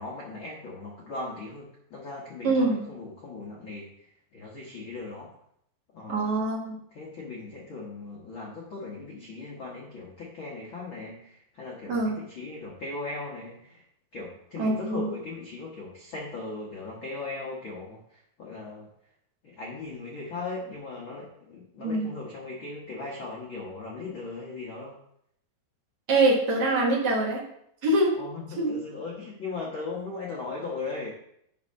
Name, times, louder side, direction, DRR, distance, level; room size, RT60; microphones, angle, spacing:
voice 1, 0.0-5.3 5.9-6.4 6.9-13.8 14.1-18.9 19.4-25.0 28.1-31.1, left 3 dB, 80° left, -4 dB, 1.1 m, -38 dB
voice 2, 2.4-2.8 6.1-6.8 11.9-12.1 14.6-15.1 21.8-22.1 26.1-27.4 27.8-28.2 28.6-28.7, right 2 dB, 75° right, -4 dB, 0.9 m, -24 dB
10.0 x 3.7 x 5.4 m, 0.73 s
omnidirectional pair, 4.5 m